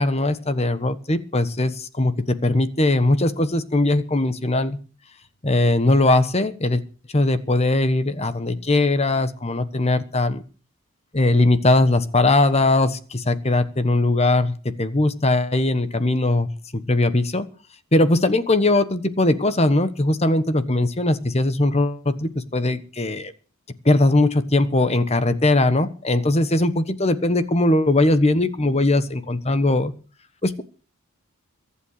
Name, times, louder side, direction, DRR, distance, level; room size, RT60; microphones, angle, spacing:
voice 1, 0.0-4.8 5.4-6.8 7.1-10.4 11.1-16.5 16.7-17.5 17.9-23.3 23.8-29.9 30.4-30.6, left 2 dB, 30° left, 12 dB, 1.2 m, -20 dB
23.0 x 8.7 x 6.6 m, 0.37 s
head